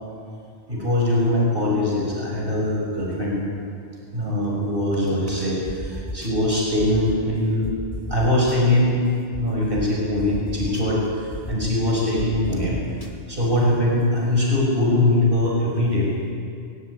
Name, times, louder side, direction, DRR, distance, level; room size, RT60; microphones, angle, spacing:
voice 1, 0.7-3.4 4.1-7.7 8.1-9.0 9.4-12.8 13.3-16.1, left 1 dB, 50° right, -3 dB, 6.2 m, -22 dB
sound 1, 5.7-6.3 6.8-7.2 7.6-8.6 9.3-9.4 9.8-9.9 10.2-10.8 11.3-11.7 12.2-13.1, left 1 dB, 30° left, 2.3 m, -32 dB
22.5 x 21.0 x 9.6 m, 2.3 s
omnidirectional pair, 1.2 m